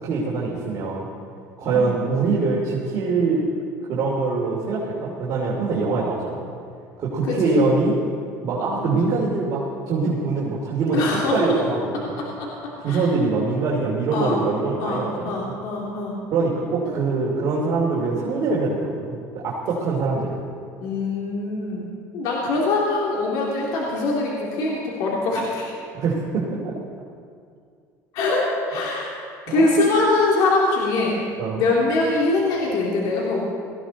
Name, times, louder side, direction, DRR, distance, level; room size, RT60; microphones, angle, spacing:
voice 1, 0.0-1.1 1.6-3.4 3.9-6.5 7.0-7.9 8.4-12.2 12.8-15.5 16.3-20.4 25.9-26.7 29.5-29.9 31.4-31.6, right 3 dB, 55° right, -5 dB, 2.8 m, -23 dB
voice 2, 10.9-11.6 12.2-12.5 12.8-13.0 14.1-14.4 14.8-16.2 20.8-25.7 28.1-31.2 31.5-33.4, left 2 dB, 70° left, -3 dB, 2.9 m, -23 dB
18.5 x 15.0 x 4.2 m, 2.3 s
supercardioid pair, 110°, 7 cm